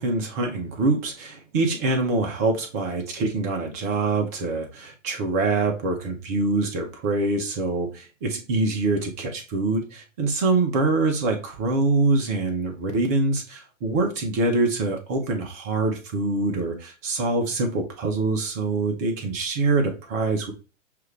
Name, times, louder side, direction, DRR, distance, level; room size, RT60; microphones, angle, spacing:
voice 1, 0.0-20.5, right 3 dB, 15° right, 3 dB, 0.4 m, -25 dB
6.5 x 2.5 x 3.1 m, 0.32 s
figure-of-eight pair, 120°, 38 cm